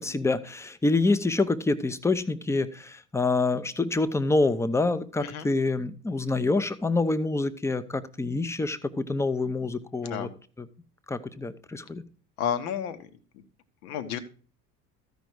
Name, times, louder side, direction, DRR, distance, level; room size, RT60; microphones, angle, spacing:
voice 1, 0.0-10.3 10.6-10.7 11.1-12.0, left 3 dB, 5° left, 14 dB, 0.7 m, -26 dB
voice 2, 12.4-13.0 13.8-14.2, left 9 dB, 65° left, 11 dB, 1.4 m, -31 dB
14.5 x 5.4 x 4.6 m, 0.39 s
figure-of-eight pair, 65°, 48 cm